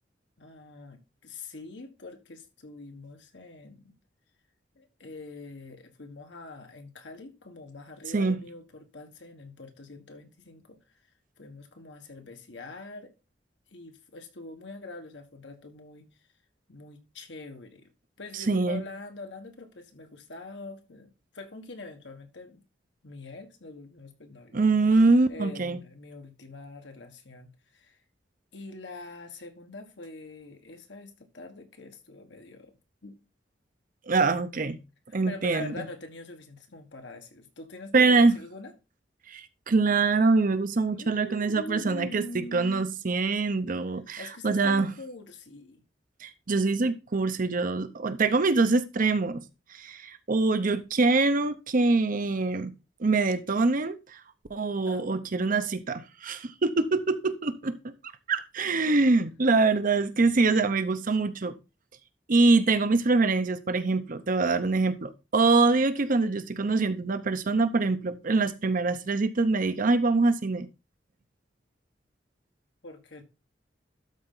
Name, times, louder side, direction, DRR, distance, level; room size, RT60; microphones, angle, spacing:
voice 1, 0.4-4.0 4.7-10.8 11.4-13.1 13.7-16.1 16.7-17.9 18.2-22.6 23.0-24.6 25.3-28.0 28.5-32.7 33.0-33.2 35.2-38.7 40.9-42.9 44.2-45.8 54.9-55.1 72.8-73.2, left 2 dB, 75° left, 1.5 m, -44 dB
voice 2, 18.5-18.8 24.5-25.8 34.1-34.8 35.1-35.8 37.9-38.4 39.3-44.9 46.2-49.4 49.8-52.7 53.0-54.0 54.5-57.8 58.3-61.5 62.3-70.7, right 3 dB, 50° right, 0.7 m, -24 dB
12.5 x 4.3 x 3.8 m
head